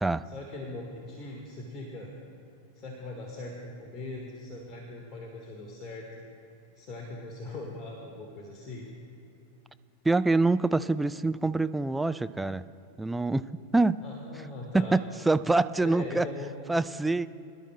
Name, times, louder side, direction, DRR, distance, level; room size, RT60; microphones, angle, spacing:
voice 1, 0.2-2.1 2.7-6.2 6.7-8.9 14.0-15.0 15.8-16.5, left 2 dB, 35° left, 0 dB, 1.5 m, -40 dB
voice 2, 10.0-12.6 13.0-13.5 13.7-14.0 14.7-16.3 16.7-17.3, right 3 dB, 5° right, 13 dB, 0.3 m, -25 dB
23.0 x 12.0 x 2.2 m, 2.8 s
figure-of-eight pair, 90°, 0 cm